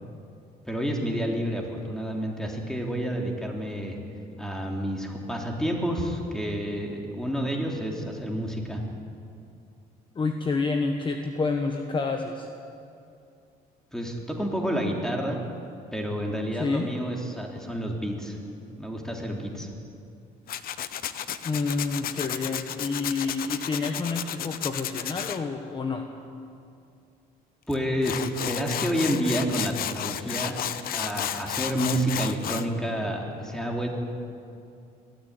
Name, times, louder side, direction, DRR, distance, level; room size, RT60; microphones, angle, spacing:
voice 1, 0.6-4.0 4.4-8.8 13.9-15.4 15.9-18.4 18.8-19.7 27.7-30.6 30.9-33.9, equal, 5° left, 0 dB, 3.3 m, -29 dB
voice 2, 10.1-12.5 16.5-16.9 21.4-26.0, left 4 dB, 30° left, 4 dB, 1.3 m, -29 dB
Tools, 20.5-25.4 27.7-27.8 28.0-32.7, left 10 dB, 60° left, 0.9 m, -32 dB
19.5 x 13.5 x 9.6 m, 2.5 s
cardioid pair, 110°, 17 cm